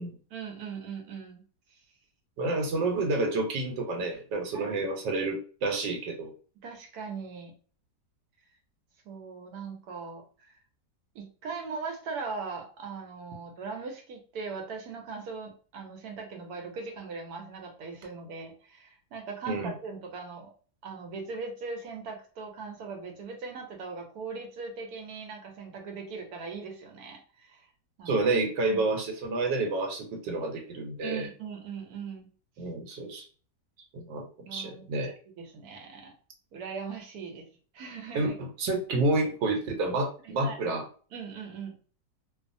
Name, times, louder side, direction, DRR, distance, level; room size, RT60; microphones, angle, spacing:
voice 1, 0.3-1.4 1.7-1.8 4.5-4.7 6.6-7.5 9.1-10.6 11.1-20.5 20.8-27.7 28.0-28.2 28.7-28.8 31.0-32.3 34.4-36.1 36.5-37.5 37.7-38.3 40.2-40.6 41.1-41.8, right 5 dB, 70° right, 3 dB, 1.1 m, -40 dB
voice 2, 2.4-6.3 19.5-19.7 28.1-31.3 32.6-33.2 33.9-35.1 38.1-40.9, right 2 dB, 85° right, 2 dB, 1.3 m, -29 dB
2.6 x 2.3 x 2.5 m, 0.41 s
omnidirectional pair, 1.9 m